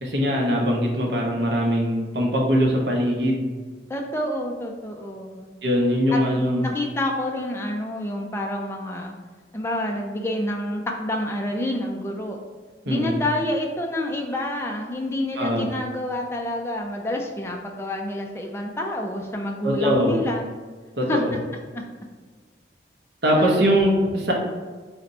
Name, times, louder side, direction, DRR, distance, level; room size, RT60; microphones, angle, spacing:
voice 1, 0.0-3.5 5.6-6.7 12.9-13.1 15.4-15.7 19.6-20.1 21.0-21.3 23.2-24.3, equal, 65° right, -1 dB, 0.8 m, -21 dB
voice 2, 3.9-5.5 6.1-9.1 9.5-12.4 12.9-20.5 21.1-21.2 21.7-21.8 23.3-23.6, left 1 dB, 15° left, 1 dB, 0.4 m, -28 dB
3.4 x 2.6 x 4.1 m, 1.4 s
head